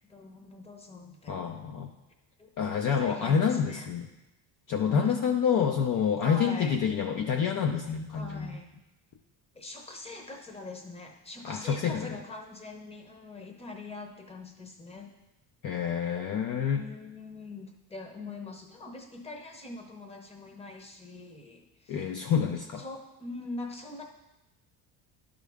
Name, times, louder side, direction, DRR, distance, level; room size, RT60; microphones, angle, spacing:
voice 1, 0.1-1.5 2.4-2.5 3.0-3.9 4.9-5.1 6.2-6.8 8.1-8.7 9.5-15.1 16.7-22.0 22.8-24.0, left 3 dB, 15° left, 3 dB, 0.8 m, -43 dB
voice 2, 1.3-1.9 2.6-4.1 4.7-8.6 11.4-12.1 15.6-16.8 21.9-22.8, left 7 dB, 45° left, 3 dB, 0.6 m, -28 dB
11.0 x 5.2 x 3.5 m, 0.98 s
cardioid pair, 150°, 45 cm